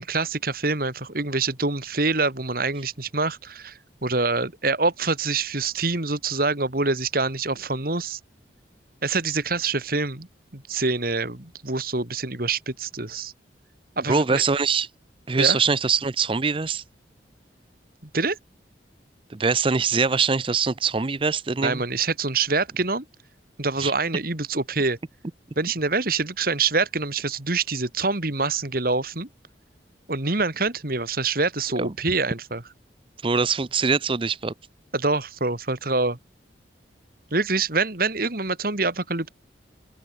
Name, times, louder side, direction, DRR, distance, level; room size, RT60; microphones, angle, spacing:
voice 1, 0.0-8.2 9.0-10.3 10.5-13.3 14.0-14.4 15.4-15.6 18.1-18.4 21.6-23.0 23.6-25.0 25.6-29.3 30.1-32.6 34.9-36.2 37.3-39.3, right 3 dB, 55° right, 2.5 m, -25 dB
voice 2, 14.1-14.9 15.3-16.8 19.3-21.8 23.8-23.9 31.8-31.9 33.2-34.5, right 5 dB, 30° right, 0.6 m, -23 dB
open air
head